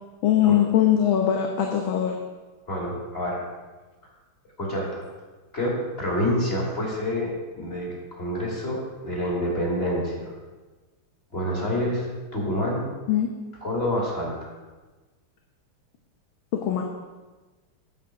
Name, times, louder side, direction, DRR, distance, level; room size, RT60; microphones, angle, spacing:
voice 1, 0.2-2.2 13.1-13.3 16.6-16.8, left 10 dB, 70° left, 2 dB, 1.8 m, -21 dB
voice 2, 2.7-3.4 4.6-5.0 5.5-10.3 11.3-12.9 13.6-14.5, equal, 25° left, -2 dB, 3.1 m, -27 dB
9.0 x 7.9 x 6.6 m, 1.3 s
omnidirectional pair, 2.3 m